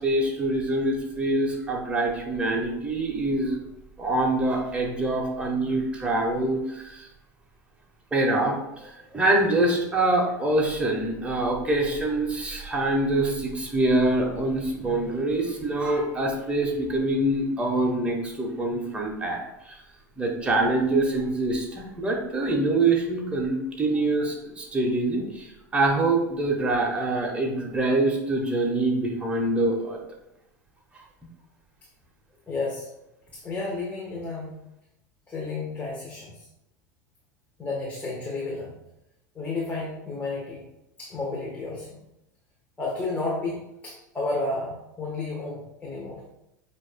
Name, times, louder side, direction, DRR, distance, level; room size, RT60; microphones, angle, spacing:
voice 1, 0.0-3.6 4.0-7.1 8.1-19.4 20.2-30.0, right 2 dB, 10° right, -1 dB, 0.9 m, -25 dB
voice 2, 32.5-32.9 33.3-34.6 35.3-36.4 37.6-38.7 39.3-40.6 41.0-42.0 42.8-46.2, left 3 dB, 15° left, -5 dB, 1.1 m, -32 dB
7.2 x 2.6 x 2.2 m, 0.87 s
hypercardioid pair, 80°, 9 cm